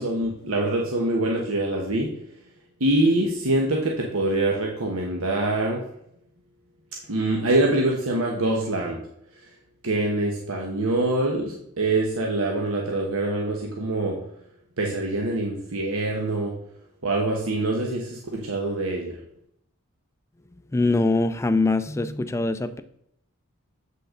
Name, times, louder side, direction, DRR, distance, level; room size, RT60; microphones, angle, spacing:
voice 1, 0.0-2.1 2.8-5.8 7.1-9.0 9.8-14.2 14.8-16.5 17.0-19.1, right 2 dB, 85° right, 0 dB, 1.1 m, -24 dB
voice 2, 20.7-22.8, left 2 dB, 15° left, 10 dB, 0.4 m, -23 dB
7.8 x 5.7 x 3.8 m, 0.74 s
head